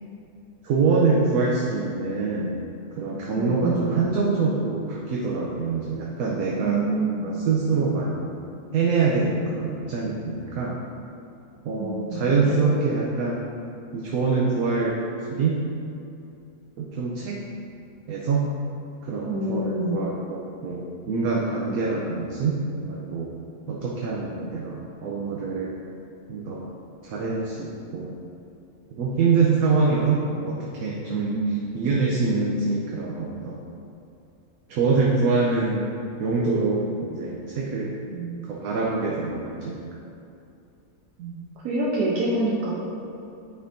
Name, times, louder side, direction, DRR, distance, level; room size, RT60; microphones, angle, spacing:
voice 1, 0.6-2.6 2.9-6.9 7.2-8.3 8.7-10.8 11.6-13.4 13.9-15.0 15.3-15.6 16.8-17.5 18.1-18.5 19.0-23.3 23.7-25.7 26.3-26.7 27.0-28.1 29.0-33.6 34.7-35.9 36.2-38.0 38.4-39.8, right 4 dB, 70° right, -3 dB, 1.1 m, -25 dB
voice 2, 3.3-3.8 6.6-7.2 11.8-12.6 19.3-20.0 31.3-31.7 38.1-38.4 41.2-42.8, right 2 dB, 90° right, -5 dB, 1.4 m, -27 dB
9.6 x 4.3 x 2.6 m, 2.7 s
omnidirectional pair, 1.6 m